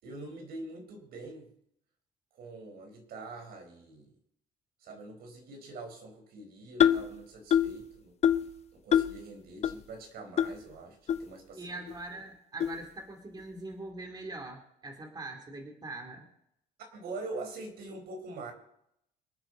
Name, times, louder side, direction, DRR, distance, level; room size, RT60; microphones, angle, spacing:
voice 1, 0.0-1.5 2.3-4.1 4.8-8.1 8.7-11.8 16.9-18.5, right 2 dB, 65° right, 3 dB, 4.5 m, -44 dB
sound 1, 6.8-7.1 7.5-7.8 8.2-8.5 8.9-9.2 9.6-9.7 10.4-10.5 11.1-11.2 11.9-12.0 12.6-12.8, left 9 dB, 40° left, 0.8 m, -24 dB
voice 2, 11.6-16.3, right 2 dB, 25° right, 3 dB, 3.0 m, -42 dB
26.0 x 9.1 x 4.0 m, 0.75 s
cardioid pair, 110°, 17 cm